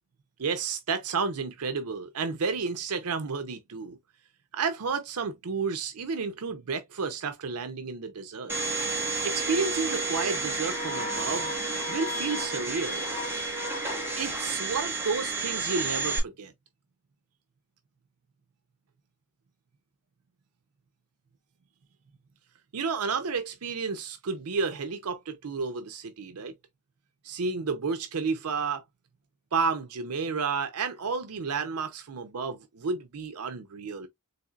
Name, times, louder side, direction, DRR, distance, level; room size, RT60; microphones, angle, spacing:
voice 1, 0.4-4.0 4.5-8.5 9.2-11.6 11.9-13.0 14.1-16.5 22.7-26.5 27.2-28.8 29.5-34.1, right 5 dB, 85° right, 0.6 m, -31 dB
Domestic sounds home sounds, 8.5-16.2, right 2 dB, 10° right, 1.2 m, -31 dB
4.2 x 3.2 x 2.3 m
head